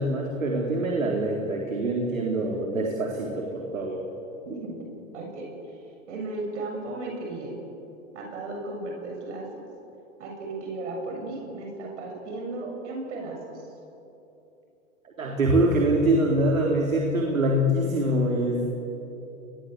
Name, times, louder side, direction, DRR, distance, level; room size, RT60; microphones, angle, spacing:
voice 1, 0.0-4.0 15.2-18.7, right 1 dB, 85° right, 0 dB, 4.1 m, -24 dB
voice 2, 4.4-5.8 6.1-7.6 8.1-9.7 10.2-13.7, right 2 dB, 60° right, 1 dB, 7.4 m, -35 dB
30.0 x 21.5 x 8.1 m, 2.9 s
hypercardioid pair, 115°, 39 cm